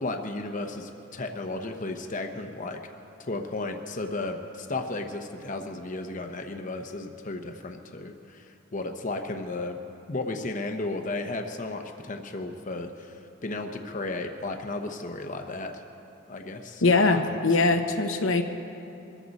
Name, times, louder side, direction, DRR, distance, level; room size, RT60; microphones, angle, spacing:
voice 1, 0.0-2.8 3.2-8.5 8.7-9.8 10.1-15.7 16.3-17.2 17.6-17.8, left 2 dB, 40° left, 4 dB, 0.9 m, -34 dB
voice 2, 16.8-18.4, left 3 dB, 70° left, 6 dB, 0.9 m, -22 dB
24.0 x 14.5 x 4.2 m, 2.7 s
head